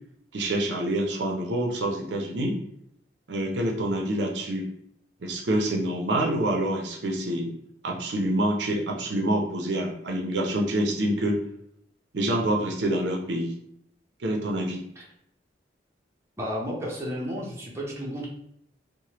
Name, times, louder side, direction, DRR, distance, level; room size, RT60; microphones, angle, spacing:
voice 1, 0.3-2.6 3.3-4.7 5.2-7.5 7.8-11.4 12.1-13.5 14.2-14.8, right 1 dB, 75° right, 0 dB, 0.5 m, -26 dB
voice 2, 16.4-18.3, equal, 15° right, -4 dB, 0.7 m, -32 dB
3.1 x 2.1 x 2.9 m, 0.72 s
head